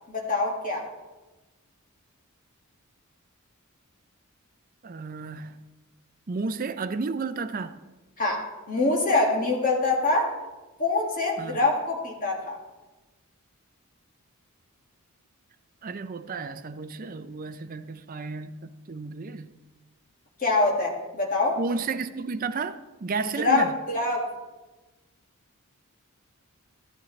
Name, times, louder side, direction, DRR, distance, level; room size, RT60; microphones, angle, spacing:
voice 1, 0.1-0.9 8.2-10.4 10.8-12.6 20.4-21.6 23.4-24.3, left 3 dB, 40° left, 1.9 m, -25 dB
voice 2, 4.8-5.6 6.3-7.8 11.4-11.6 15.8-19.5 21.6-23.8, right 4 dB, 40° right, 0.5 m, -32 dB
14.0 x 10.5 x 3.2 m
head